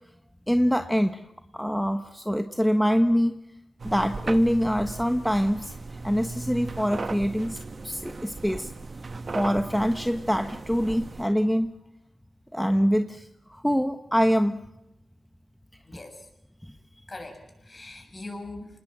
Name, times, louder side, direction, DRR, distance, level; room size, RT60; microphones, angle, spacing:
voice 1, 0.5-1.2 1.5-3.4 3.8-5.7 6.0-7.6 7.8-8.7 9.3-11.7 12.5-14.6, equal, ahead, 7 dB, 1.3 m, -24 dB
sound 1, 3.8-11.2, right 3 dB, 50° right, 1.2 m, -37 dB
voice 2, 15.9-16.3 17.1-18.8, left 2 dB, 35° left, 4 dB, 7.5 m, -41 dB
27.0 x 20.0 x 7.7 m, 0.86 s
cardioid pair, 55°, 0 cm